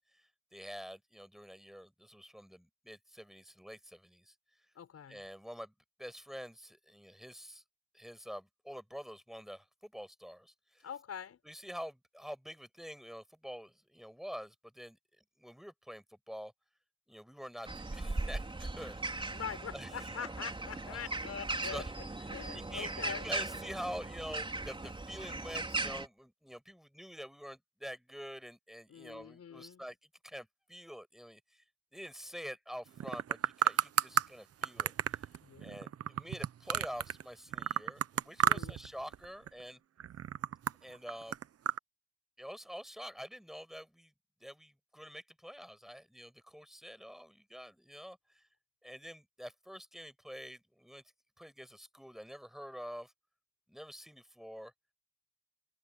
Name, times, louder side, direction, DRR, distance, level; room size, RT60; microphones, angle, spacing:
voice 1, 0.0-4.3 5.1-5.7 6.0-7.6 7.9-10.9 11.4-15.0 15.4-16.5 17.1-19.4 19.7-20.1 20.9-21.1 21.7-21.9 22.5-22.9 23.2-30.0 30.2-31.6 31.9-35.3 35.6-39.8 40.8-41.4 42.4-44.1 44.4-48.5 48.8-51.0 51.4-53.1 53.7-54.7, equal, ahead, 7.4 m, -47 dB
voice 2, 4.7-5.2 10.8-11.4 19.3-21.9 22.3-23.3 28.9-29.8 35.4-35.9 38.4-38.8, left 7 dB, 55° left, 6.6 m, -44 dB
sound 1, 17.7-26.1, right 2 dB, 15° right, 4.1 m, -38 dB
sound 2, 33.0-34.3 34.6-37.2 37.5-38.9 39.1-39.6 40.0-41.8, right 10 dB, 50° right, 1.0 m, -32 dB
cardioid pair, 90°, 30 cm